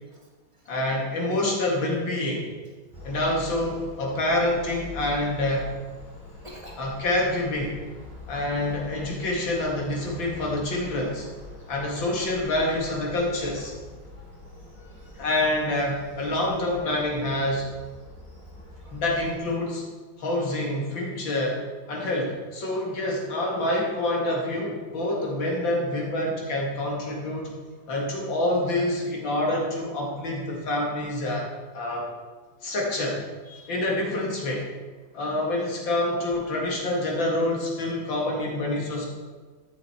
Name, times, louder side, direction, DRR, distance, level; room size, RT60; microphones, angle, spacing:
voice 1, 0.7-2.4 3.0-5.7 6.8-7.8 8.3-11.2 11.7-13.7 15.2-17.7 18.9-19.8 20.2-21.6 21.9-27.5 27.9-31.4 31.7-32.1 32.6-33.2 33.7-34.7 35.1-39.1, left 1 dB, 65° left, -2 dB, 2.8 m, -27 dB
sound 1, 2.9-19.4, left 1 dB, 10° left, 3.1 m, -44 dB
voice 2, 6.4-6.9 13.6-13.7 14.1-14.3 14.7-15.2 18.5-18.9 21.9-22.0 27.1-27.2 27.7-27.8 33.4-33.8, left 1 dB, 15° right, -3 dB, 2.0 m, -49 dB
12.5 x 7.1 x 4.4 m, 1.4 s
omnidirectional pair, 2.3 m